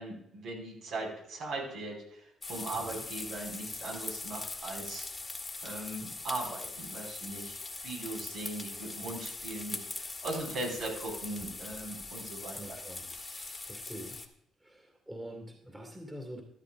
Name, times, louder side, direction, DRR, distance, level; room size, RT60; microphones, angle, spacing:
voice 1, 0.0-5.0 5.6-12.8 13.1-13.7, right 2 dB, 75° right, 0 dB, 5.5 m, -39 dB
sound 1, 2.4-14.3, left 3 dB, 25° left, 1.6 m, -41 dB
voice 2, 2.7-3.0 12.5-13.1 13.7-14.2 14.6-16.4, right 1 dB, 15° right, 2 dB, 2.3 m, -45 dB
13.5 x 13.0 x 2.6 m, 0.73 s
cardioid pair, 85°, 0 cm